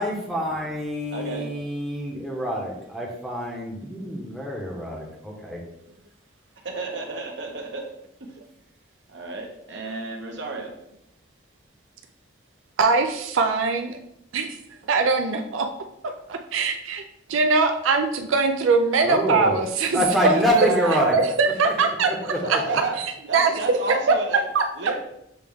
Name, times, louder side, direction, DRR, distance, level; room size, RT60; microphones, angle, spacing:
voice 1, 0.0-5.6 19.0-19.6 19.9-21.2 22.1-22.8, equal, ahead, -2 dB, 0.8 m, -26 dB
voice 2, 1.1-1.5 6.6-7.9 9.1-10.7 20.3-21.2 22.4-23.0 23.3-24.4 24.8-25.0, right 3 dB, 60° right, 2 dB, 0.8 m, -31 dB
voice 3, 12.8-13.9 14.3-14.6 14.9-15.7 16.3-17.0 17.3-20.7 21.1-22.6 23.0-23.1 23.3-24.0 24.5-24.6, right 4 dB, 80° right, 5 dB, 0.4 m, -22 dB
6.7 x 2.3 x 3.5 m, 0.79 s
head